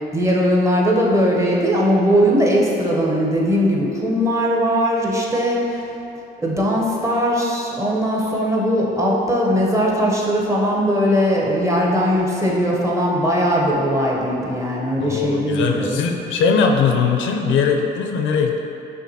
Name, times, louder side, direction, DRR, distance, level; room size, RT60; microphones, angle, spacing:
voice 1, 0.1-5.9 6.4-16.0, equal, 15° right, -4 dB, 0.7 m, -19 dB
voice 2, 15.0-18.6, left 5 dB, 75° left, 2 dB, 0.4 m, -20 dB
5.8 x 2.6 x 2.7 m, 2.8 s
cardioid pair, 90°, 20 cm